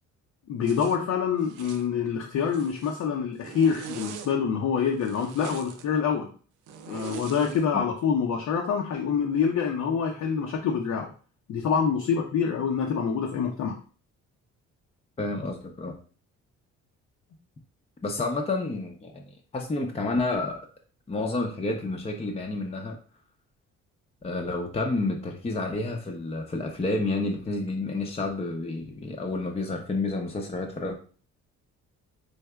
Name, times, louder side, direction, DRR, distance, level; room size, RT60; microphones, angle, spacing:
voice 1, 0.5-6.3 6.9-11.1 11.5-13.8, left 6 dB, 65° left, 0 dB, 0.7 m, -26 dB
Zipper (clothing), 0.6-1.0 1.4-1.9 2.4-3.1 3.4-4.3 5.0-5.9 6.7-7.7, right 7 dB, 80° right, 0.5 m, -42 dB
voice 2, 15.2-15.9 18.0-20.6 21.1-23.0 24.2-30.9, left 2 dB, 20° left, 1 dB, 0.6 m, -30 dB
4.8 x 2.6 x 2.2 m, 0.39 s
cardioid pair, 90°, 30 cm